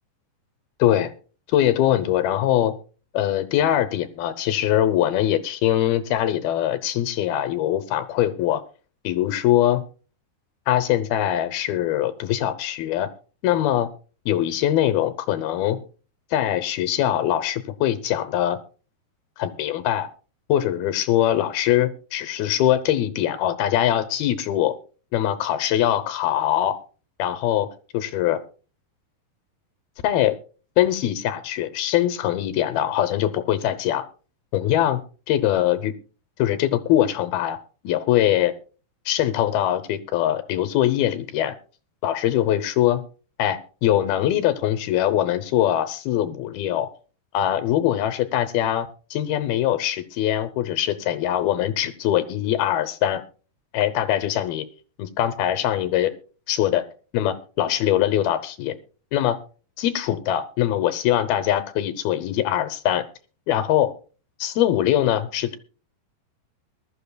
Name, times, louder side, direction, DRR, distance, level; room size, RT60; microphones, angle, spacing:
voice 1, 0.8-1.1 1.5-2.7 3.1-8.6 9.0-9.8 10.7-13.1 13.4-13.9 14.3-15.8 16.3-18.6 19.4-20.1 20.5-24.8 25.1-26.8 27.2-27.7 27.9-28.4 30.0-30.4 30.8-34.0 34.5-35.0 35.3-35.9 36.4-37.6 37.8-38.5 39.1-41.5 42.0-43.0 43.4-46.9 47.3-53.2 53.7-54.7 55.0-56.1 56.5-56.8 57.1-58.8 59.1-59.4 59.8-63.0 63.5-63.9 64.4-65.5, left 12 dB, 75° left, 12 dB, 2.5 m, -22 dB
22.0 x 12.5 x 2.2 m, 0.36 s
omnidirectional pair, 4.8 m